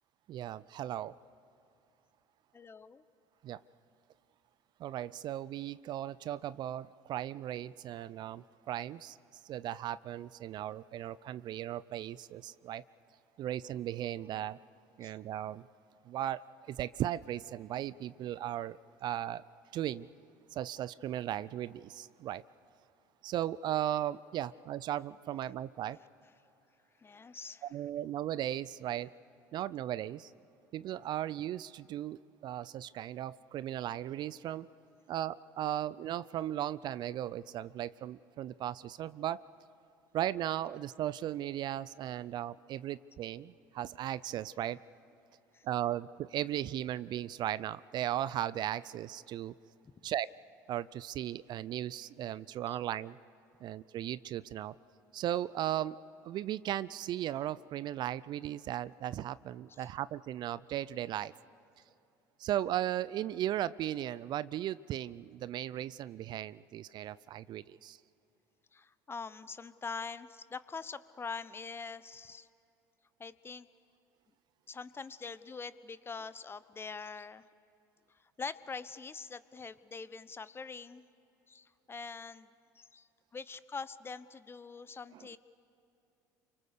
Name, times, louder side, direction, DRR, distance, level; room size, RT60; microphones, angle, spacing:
voice 1, 0.3-1.2 3.4-3.6 4.8-9.2 9.4-12.8 13.4-14.6 15.0-15.7 16.1-16.4 16.7-19.5 19.7-20.1 20.5-22.4 23.2-26.0 27.7-29.1 29.5-30.3 30.7-34.7 35.1-39.4 40.1-44.8 45.6-49.5 50.0-50.3 50.7-53.2 53.6-54.8 55.1-56.0 56.2-61.3 62.4-68.0 85.1-85.4, right 12 dB, 50° right, 18 dB, 0.5 m, -36 dB
voice 2, 2.5-3.0 15.0-15.1 27.0-27.7 45.5-45.7 52.7-52.8 59.8-59.9 68.7-72.5 73.2-73.7 74.7-77.5 78.1-81.1 81.5-85.4, left 5 dB, 25° left, 15 dB, 1.0 m, -44 dB
28.5 x 24.5 x 6.7 m, 2.8 s
hypercardioid pair, 70°, 10 cm